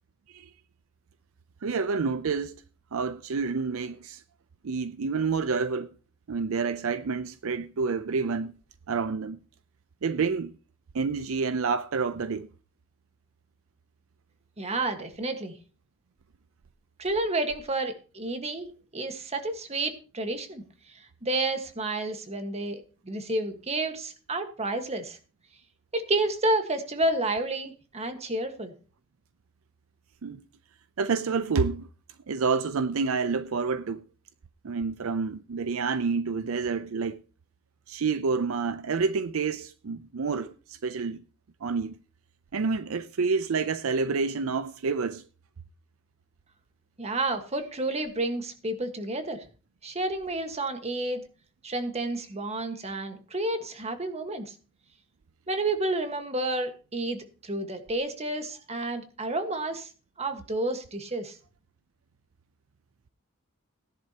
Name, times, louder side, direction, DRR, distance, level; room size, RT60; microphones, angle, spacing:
voice 1, 1.6-2.6 2.9-4.2 4.6-5.9 6.3-8.5 8.9-9.4 10.0-10.5 10.9-12.5 30.2-30.4 31.0-31.9 32.3-34.0 34.6-37.2 37.9-41.2 41.6-42.0 42.5-45.2, right 5 dB, 70° right, 0.5 m, -28 dB
voice 2, 14.6-15.5 17.0-20.6 21.2-22.8 23.0-25.2 25.9-28.7 47.0-49.5 49.8-51.2 51.6-54.5 55.5-59.9 60.2-61.4, right 2 dB, 30° right, 1.5 m, -30 dB
16.5 x 10.5 x 2.9 m
head